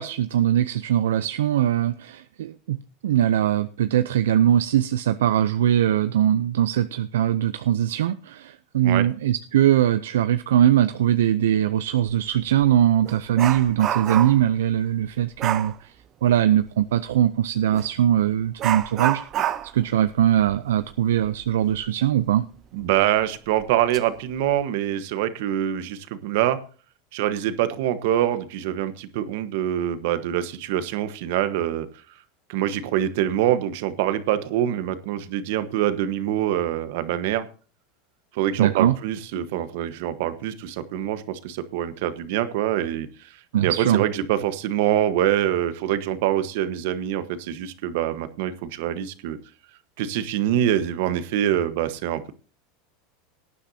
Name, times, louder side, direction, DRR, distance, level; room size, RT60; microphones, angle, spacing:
voice 1, 0.0-2.8 3.0-15.9 16.2-19.2 19.7-22.4 38.6-39.0 43.5-44.0, right 11 dB, 85° right, 12 dB, 0.5 m, -21 dB
Dog, 12.0-12.2 12.6-14.5 15.4-15.8 17.7-17.9 18.6-21.9 22.2-22.3 22.8-22.9 23.6-24.0 24.4-24.6, right 11 dB, 40° right, 0.6 m, -29 dB
voice 2, 22.7-26.6 27.1-31.9 32.5-37.5 38.3-43.4 43.6-49.4 50.0-52.3, right 11 dB, 70° right, 12 dB, 1.2 m, -25 dB
18.0 x 10.0 x 2.8 m, 0.39 s
hypercardioid pair, 110°, 0 cm